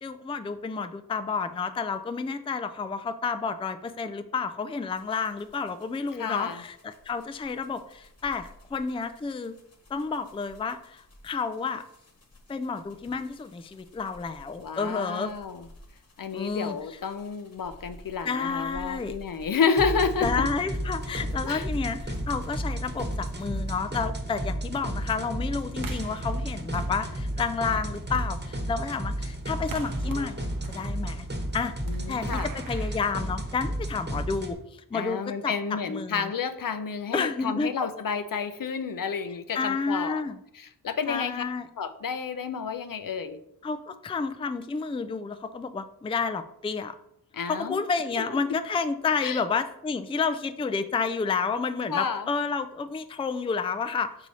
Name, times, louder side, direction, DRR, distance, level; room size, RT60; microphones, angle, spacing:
voice 1, 0.0-9.5 9.9-11.8 12.5-15.3 16.3-16.8 18.2-19.1 20.2-31.3 31.5-31.7 32.1-35.5 35.9-36.3 37.1-37.7 39.5-40.4 41.1-41.7 43.6-46.9 47.5-54.3, left 5 dB, 15° left, 10 dB, 0.4 m, -30 dB
sound 1, 4.9-23.8, equal, 40° left, 1.2 m, -50 dB
voice 2, 6.2-6.6 14.6-15.7 16.2-20.3 21.4-21.7 31.9-32.5 34.9-40.2 40.5-41.4 41.8-43.4 47.3-47.8 48.1-48.6 49.2-49.4 51.9-52.3, left 6 dB, 60° left, 11 dB, 0.5 m, -30 dB
sound 2, 19.8-34.5, right 1 dB, 25° right, 1.2 m, -32 dB
sound 3, 25.8-33.9, right 4 dB, 60° right, 0.8 m, -44 dB
5.5 x 4.7 x 4.2 m, 0.76 s
wide cardioid pair, 70°, 38 cm